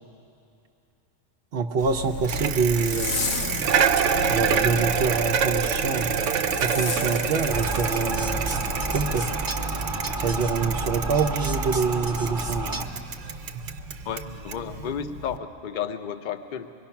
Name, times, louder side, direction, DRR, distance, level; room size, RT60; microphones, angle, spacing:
voice 1, 1.5-3.6 4.3-6.1 6.6-8.6 8.9-9.3 10.2-12.8, right 4 dB, 60° right, 1 dB, 1.0 m, -26 dB
Zipper (clothing), 1.8-9.3, left 4 dB, 80° left, 1.3 m, -34 dB
Bicycle, 2.2-15.4, right 7 dB, 85° right, 1.1 m, -27 dB
sound 1, 7.5-12.8, right 2 dB, 20° right, 1.0 m, -30 dB
voice 2, 14.0-16.7, left 8 dB, 45° left, 8 dB, 0.8 m, -32 dB
25.0 x 22.0 x 5.8 m, 2.8 s
omnidirectional pair, 1.2 m